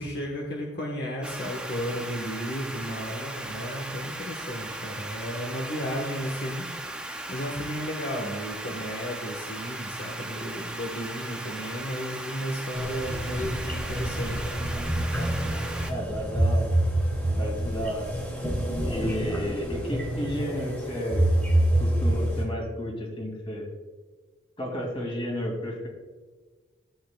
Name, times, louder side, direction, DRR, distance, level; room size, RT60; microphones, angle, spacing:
voice 1, 0.0-6.6 7.3-14.5, equal, 60° left, -1 dB, 1.2 m, -33 dB
sound 1, 1.2-15.9, right 1 dB, 5° right, 0.6 m, -37 dB
sound 2, 12.7-22.4, right 1 dB, 10° left, 2.4 m, -27 dB
voice 2, 15.9-16.7 17.4-18.1 18.8-21.3 21.8-23.7 24.6-25.9, equal, 30° left, 0 dB, 2.3 m, -32 dB
14.0 x 8.0 x 2.3 m, 1.4 s
head